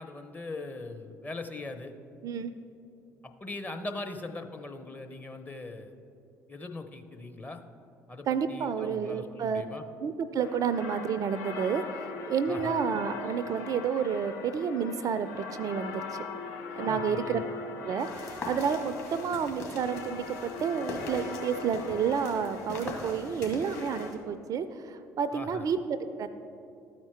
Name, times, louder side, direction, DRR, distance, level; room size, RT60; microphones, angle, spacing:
voice 1, 0.0-1.9 3.2-5.9 6.5-7.6 8.1-9.8 12.5-12.8 16.9-17.4 25.3-25.6, left 2 dB, 20° left, 5 dB, 0.7 m, -40 dB
voice 2, 8.3-9.6 10.0-16.0 16.8-17.4 17.8-26.3, right 7 dB, 40° right, 12 dB, 0.3 m, -30 dB
sound 1, 10.4-24.1, left 4 dB, 70° left, 0.6 m, -40 dB
sound 2, 18.0-24.2, left 3 dB, 40° left, 2.1 m, -42 dB
13.0 x 4.4 x 4.4 m, 2.7 s
figure-of-eight pair, 50°, 9 cm